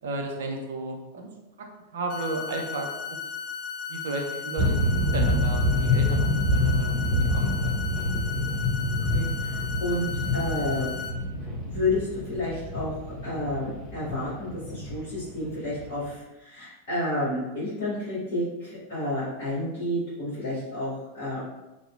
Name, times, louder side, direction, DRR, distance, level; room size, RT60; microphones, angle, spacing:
voice 1, 0.0-1.3 1.6-1.7 1.9-2.9 3.9-7.7, right 2 dB, 60° right, 1 dB, 0.4 m, -33 dB
sound 1, 2.1-11.1, left 6 dB, 30° left, 0.4 m, -36 dB
sound 2, 4.6-16.1, left 1 dB, 20° right, 0.6 m, -27 dB
voice 2, 9.1-10.9 11.6-21.4, left 1 dB, 50° left, -12 dB, 1.1 m, -30 dB
2.7 x 2.1 x 2.3 m, 1.0 s
figure-of-eight pair, 90°, 0 cm